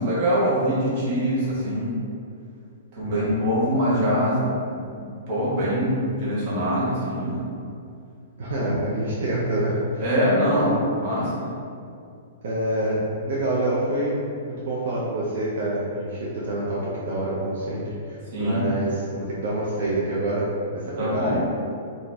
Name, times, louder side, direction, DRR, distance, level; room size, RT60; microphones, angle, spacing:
voice 1, 0.0-1.9 2.9-7.5 10.0-10.7 11.0-11.4 18.3-18.6 21.0-21.4, equal, 30° right, -8 dB, 0.9 m, -23 dB
voice 2, 3.0-3.3 8.4-10.1 10.5-10.8 12.4-14.1 14.6-21.4, right 1 dB, 55° right, -7 dB, 0.5 m, -27 dB
2.5 x 2.3 x 3.9 m, 2.4 s
hypercardioid pair, 180°, 0 cm